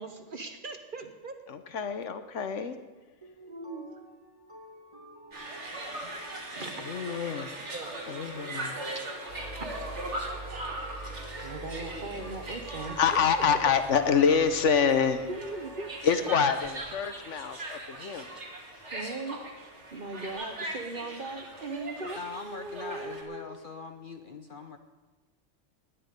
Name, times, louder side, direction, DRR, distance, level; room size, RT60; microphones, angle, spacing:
voice 1, 0.0-1.4 3.5-3.9 6.0-6.1 6.5-6.8 7.7-7.9 8.9-9.0 9.6-9.8 11.4-13.0 15.3-15.9 18.9-19.4 19.9-23.6, right 3 dB, 40° right, 6 dB, 1.2 m, -39 dB
voice 2, 1.5-2.8 6.8-7.5 8.1-8.8 12.7-15.3 16.0-18.3, left 6 dB, 65° left, 10 dB, 1.2 m, -26 dB
sound 1, 3.2-16.9, right 1 dB, 25° right, 2.1 m, -51 dB
sound 2, 5.3-23.2, right 1 dB, 60° right, 2.4 m, -40 dB
sound 3, 9.3-17.0 20.3-20.4, right 2 dB, 35° left, 4.8 m, -45 dB
voice 3, 22.2-24.8, left 4 dB, 50° left, 7 dB, 0.8 m, -42 dB
17.5 x 10.0 x 5.2 m, 1.3 s
omnidirectional pair, 1.3 m